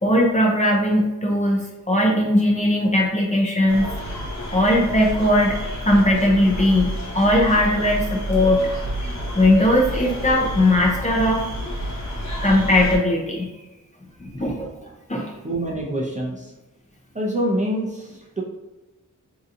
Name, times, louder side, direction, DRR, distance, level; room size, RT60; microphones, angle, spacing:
voice 1, 0.0-3.9 4.5-8.6 9.3-11.4 12.4-13.5 14.2-14.7 15.1-15.3, left 1 dB, 20° left, -2 dB, 0.6 m, -19 dB
sound 1, 3.7-13.0, equal, 55° left, 1.1 m, -30 dB
voice 2, 15.4-16.5 17.1-18.4, right 1 dB, 20° right, -3 dB, 0.6 m, -26 dB
3.8 x 2.8 x 2.6 m, 1.1 s
wide cardioid pair, 110°, 33 cm